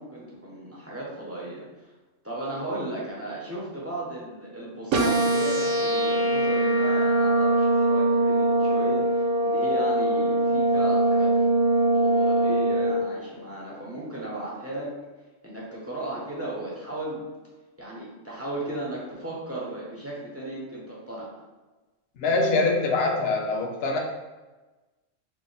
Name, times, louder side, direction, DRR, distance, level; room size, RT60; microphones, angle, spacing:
voice 1, 0.0-1.9 2.2-11.3 11.9-14.9 15.4-17.2 17.8-21.3, right 1 dB, 20° right, -6 dB, 0.4 m, -35 dB
sound 1, 4.9-12.9, right 1 dB, 70° right, 1.0 m, -22 dB
voice 2, 22.2-24.0, left 3 dB, 60° left, 0 dB, 0.8 m, -24 dB
3.4 x 2.1 x 3.9 m, 1.2 s
omnidirectional pair, 1.3 m